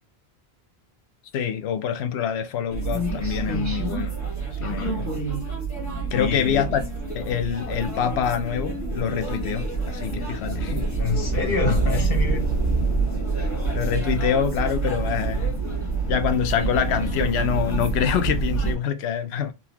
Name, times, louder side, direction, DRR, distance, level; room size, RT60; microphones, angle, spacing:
voice 1, 1.3-4.1 4.6-5.1 6.1-6.8 7.1-10.9 13.7-15.5 16.1-19.5, left 8 dB, 80° left, 0.8 m, -25 dB
sound 1, 2.7-18.8, right 3 dB, 15° left, 1.4 m, -27 dB
voice 2, 4.5-5.3 6.1-6.6 11.0-12.5, left 5 dB, 60° left, 1.1 m, -27 dB
3.9 x 2.9 x 2.8 m
omnidirectional pair, 1.1 m